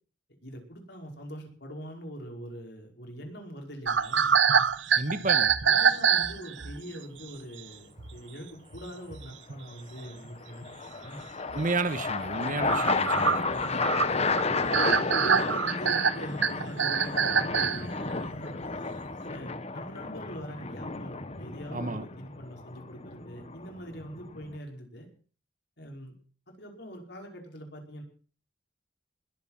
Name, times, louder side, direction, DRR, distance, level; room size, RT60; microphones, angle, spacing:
voice 1, 0.4-4.3 5.0-5.2 5.6-11.2 13.6-14.0 15.0-18.8 19.3-25.1 25.8-26.1 26.5-28.0, equal, 65° left, 5.5 m, -43 dB
sound 1, 3.9-6.8 7.6-7.7 8.0-8.2 8.7-8.8 9.1-9.6 10.2-10.3 10.6-10.7 11.5-11.6 12.0-17.8, right 6 dB, 80° right, 1.1 m, -25 dB
voice 2, 4.9-5.5 11.5-13.4 21.7-22.0, right 3 dB, 45° right, 1.4 m, -31 dB
sound 2, 5.7-6.2 10.0-24.6, left 3 dB, 35° left, 1.3 m, -32 dB
21.0 x 8.5 x 7.5 m
head